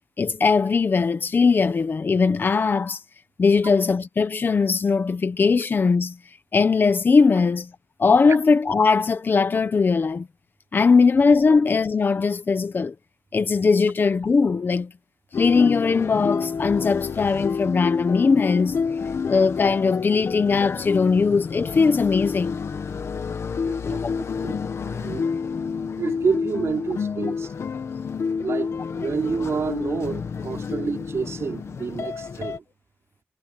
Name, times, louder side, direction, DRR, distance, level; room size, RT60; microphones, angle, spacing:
voice 1, 0.2-3.0 3.4-6.2 6.5-7.7 8.0-10.3 10.7-12.9 13.3-14.9 15.4-18.8 19.3-22.6 23.9-24.1, left 4 dB, 45° left, 1.1 m, -20 dB
sound 1, 15.3-32.6, left 5 dB, 75° left, 1.4 m, -29 dB
voice 2, 23.7-24.0 24.4-24.6 24.9-25.3 26.0-27.5 28.4-32.6, right 5 dB, 75° right, 4.9 m, -28 dB
wide cardioid pair, 170°, 5 cm